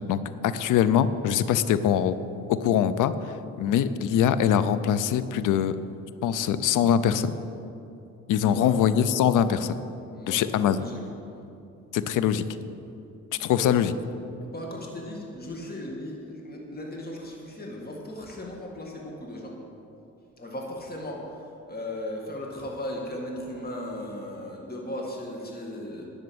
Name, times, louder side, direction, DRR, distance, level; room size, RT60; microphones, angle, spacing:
voice 1, 0.1-2.2 2.5-5.8 6.2-7.3 8.3-9.8 10.3-10.8 11.9-12.5 13.4-13.9, left 9 dB, 80° left, 14 dB, 0.6 m, -23 dB
voice 2, 8.4-8.7 10.1-11.0 13.5-13.7 14.4-19.6 20.4-26.1, left 1 dB, 30° left, -1 dB, 2.1 m, -37 dB
10.5 x 6.5 x 7.8 m, 2.7 s
cardioid pair, 75°, 31 cm